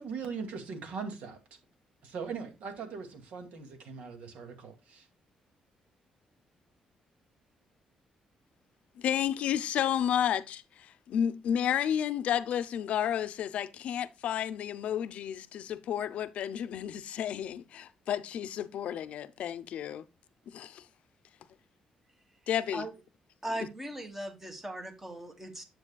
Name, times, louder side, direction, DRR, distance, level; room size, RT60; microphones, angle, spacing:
voice 1, 0.0-1.4 2.0-5.1, right 5 dB, 75° right, 2.1 m, -40 dB
voice 2, 9.0-20.0 20.5-20.8 22.5-22.8, left 9 dB, 65° left, 0.6 m, -31 dB
voice 3, 23.4-25.6, right 1 dB, 10° right, 1.4 m, -38 dB
9.8 x 7.7 x 2.3 m
cardioid pair, 165°, 2 cm